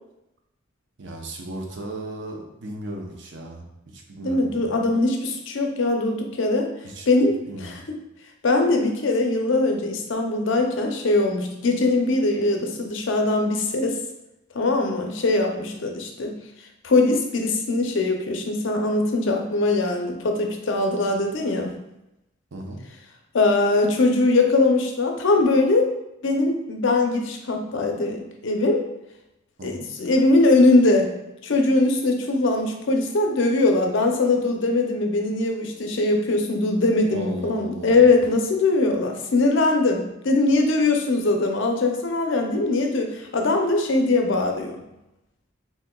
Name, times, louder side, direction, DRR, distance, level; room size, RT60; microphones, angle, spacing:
voice 1, 1.0-3.7 3.9-4.8 6.8-7.1 7.5-7.8 22.5-22.8 29.6-29.7 37.1-38.0, right 1 dB, 60° right, 1 dB, 0.7 m, -36 dB
voice 2, 4.2-6.7 7.1-8.0 8.4-14.0 14.5-16.3 16.8-21.7 23.3-25.9 26.2-28.9 29.6-31.1 31.4-44.8, left 2 dB, 65° left, 3 dB, 0.6 m, -21 dB
4.2 x 3.6 x 2.3 m, 0.90 s
head